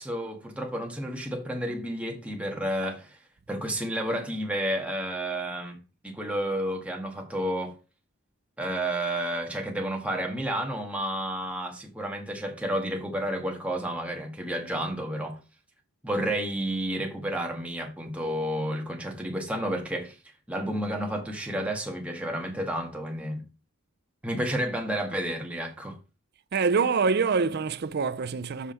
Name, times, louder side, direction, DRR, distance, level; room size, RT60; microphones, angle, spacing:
voice 1, 0.0-3.2 3.5-5.8 6.0-7.7 8.6-15.4 16.0-20.1 20.5-23.4 24.2-26.0, right 1 dB, 5° right, 1.5 m, -31 dB
voice 2, 26.5-28.7, right 5 dB, 45° right, 0.5 m, -25 dB
7.2 x 4.8 x 4.3 m
head